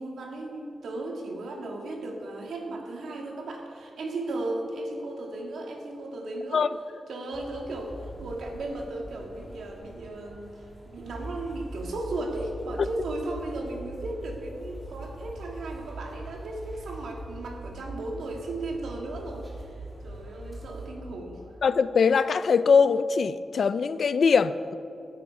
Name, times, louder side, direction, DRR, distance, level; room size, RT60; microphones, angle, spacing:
voice 1, 0.0-6.6 7.1-10.5 10.9-21.4, right 2 dB, 85° right, 1 dB, 2.2 m, -35 dB
sound 1, 7.3-20.9, right 1 dB, 20° right, 3.2 m, -42 dB
voice 2, 21.6-24.7, left 5 dB, 55° left, 14 dB, 0.4 m, -22 dB
16.0 x 12.0 x 4.8 m, 2.7 s
wide cardioid pair, 160°, 0 cm